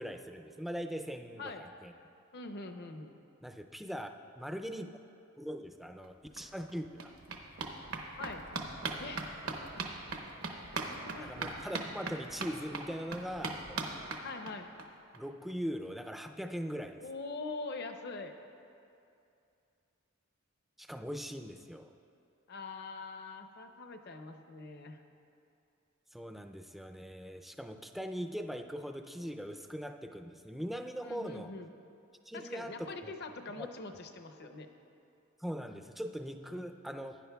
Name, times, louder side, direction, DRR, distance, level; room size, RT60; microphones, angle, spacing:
voice 1, 0.0-1.9 3.4-4.1 4.4-4.9 5.4-7.1 11.2-13.8 15.1-17.0 20.8-21.9 26.1-31.5 32.3-33.1 33.6-33.7 35.4-37.2, equal, ahead, 5 dB, 0.3 m, -41 dB
voice 2, 2.3-3.1 8.2-8.5 9.0-9.2 10.8-11.5 14.2-14.7 17.0-18.3 22.5-25.0 31.0-31.7 32.3-34.7, left 3 dB, 55° left, 6 dB, 0.6 m, -43 dB
sound 1, 6.0-6.1 6.4-14.8 15.1-15.2 15.5-15.6 15.8-15.9, right 3 dB, 85° right, 0.9 m, -40 dB
16.0 x 10.0 x 2.3 m, 2.6 s
head